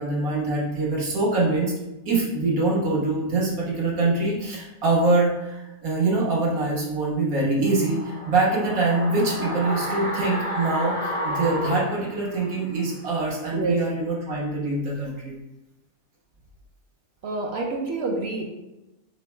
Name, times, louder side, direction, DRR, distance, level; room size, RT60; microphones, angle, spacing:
voice 1, 0.0-1.7 2.0-15.4, right 2 dB, 75° right, -4 dB, 1.6 m, -24 dB
sound 1, 7.6-12.8 13.1-13.2, equal, 10° right, 0.5 m, -31 dB
voice 2, 17.2-18.4, right 3 dB, 55° right, 0 dB, 0.8 m, -27 dB
5.3 x 2.1 x 4.4 m, 0.98 s
omnidirectional pair, 1.5 m